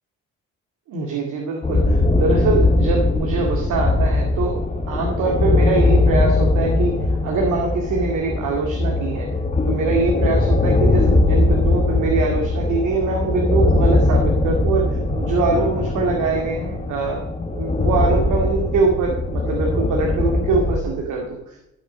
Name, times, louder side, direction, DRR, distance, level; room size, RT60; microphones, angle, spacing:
voice 1, 0.9-4.6 4.9-9.3 9.7-21.6, right 3 dB, 80° right, 1 dB, 2.2 m, -23 dB
sound 1, 1.6-20.8, left 2 dB, 25° left, 1.8 m, -20 dB
14.0 x 6.5 x 6.4 m, 0.88 s
cardioid pair, 90°, 30 cm